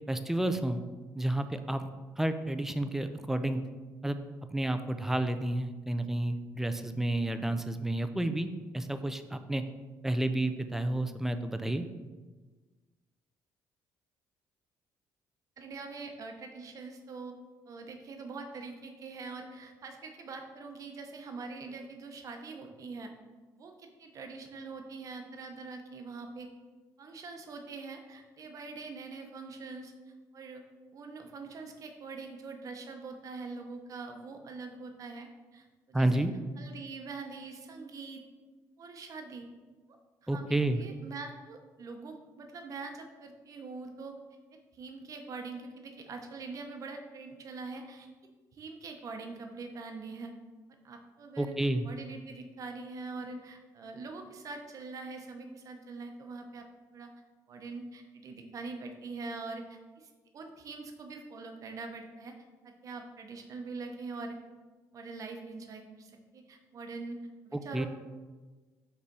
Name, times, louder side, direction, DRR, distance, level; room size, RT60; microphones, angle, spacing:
voice 1, 0.1-0.8 1.2-1.9 2.2-3.6 4.0-4.2 4.5-8.5 8.7-9.6 10.0-11.9 35.9-36.3 40.3-40.8 51.4-51.9 67.5-67.9, right 1 dB, 5° right, 9 dB, 0.4 m, -30 dB
voice 2, 15.6-17.3 17.7-23.1 23.6-26.5 27.0-29.9 30.3-30.6 30.9-36.3 36.6-38.2 38.8-39.5 39.9-44.2 44.7-48.1 48.5-50.3 50.8-56.7 56.9-57.1 57.5-62.3 62.6-64.4 64.9-67.2 67.5-67.9, right 4 dB, 45° right, 4 dB, 0.9 m, -43 dB
5.3 x 3.3 x 5.3 m, 1.3 s
cardioid pair, 110°, 8 cm